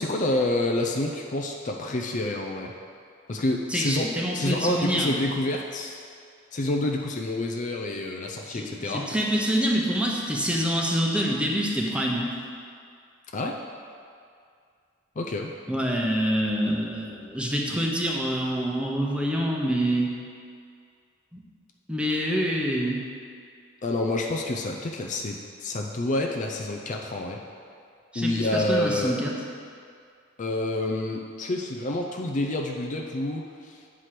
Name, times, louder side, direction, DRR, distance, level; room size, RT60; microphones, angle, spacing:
voice 1, 0.0-2.7 3.3-6.0 6.5-9.1 13.3-13.6 15.2-15.5 23.8-27.4 28.1-29.2 30.4-33.8, left 2 dB, 40° left, 1 dB, 0.5 m, -28 dB
voice 2, 3.7-5.2 8.5-12.3 15.7-20.1 21.3-21.4 21.9-23.0 28.1-29.3, equal, 5° right, -2 dB, 0.9 m, -26 dB
8.2 x 4.8 x 5.9 m, 2.3 s
head